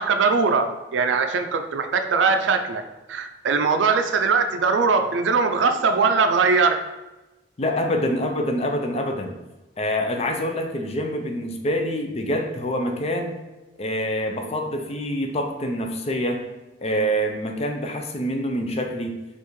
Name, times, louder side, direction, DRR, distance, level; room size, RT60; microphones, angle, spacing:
voice 1, 0.0-2.8 3.1-6.8, right 4 dB, 90° right, 7 dB, 0.4 m, -21 dB
voice 2, 7.6-9.4 9.8-13.4 13.8-16.5 16.8-19.2, equal, 35° left, 4 dB, 0.5 m, -26 dB
5.4 x 2.5 x 3.1 m, 1.1 s
head